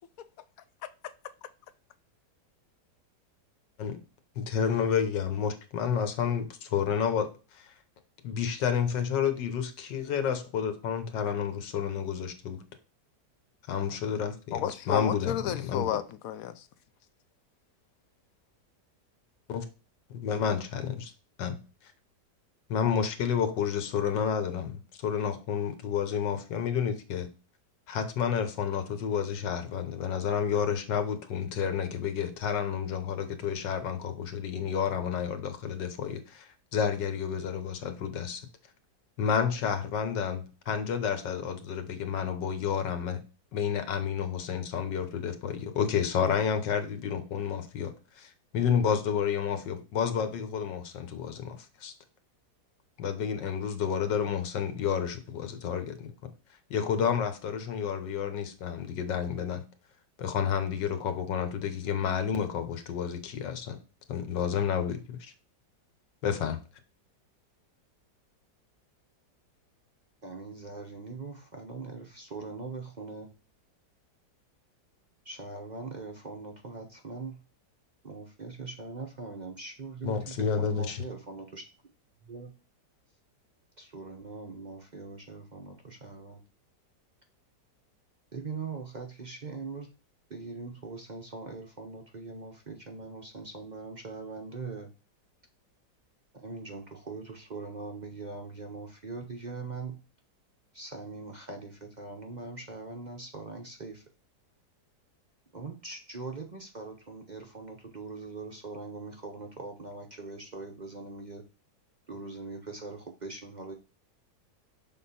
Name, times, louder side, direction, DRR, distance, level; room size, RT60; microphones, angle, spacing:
voice 1, 0.8-1.1 14.5-16.7, left 10 dB, 70° left, 0.9 m, -32 dB
voice 2, 4.4-7.7 8.2-12.6 13.7-14.6 14.9-15.9 19.5-19.6 20.1-21.1 21.4-21.6 22.7-27.3 27.9-38.4 39.2-43.2 43.5-51.9 53.0-56.1 56.7-59.6 60.2-63.8 64.1-65.3 66.2-66.6 80.0-81.0, left 7 dB, 85° left, 1.6 m, -30 dB
voice 3, 70.2-73.3 75.2-77.4 78.0-81.6 82.2-82.5 83.8-86.4 88.3-89.9 90.3-94.9 96.3-100.0 100.7-104.0 105.5-111.4 112.1-113.7, right 3 dB, 45° right, 0.5 m, -41 dB
6.3 x 3.8 x 4.1 m
omnidirectional pair, 1.9 m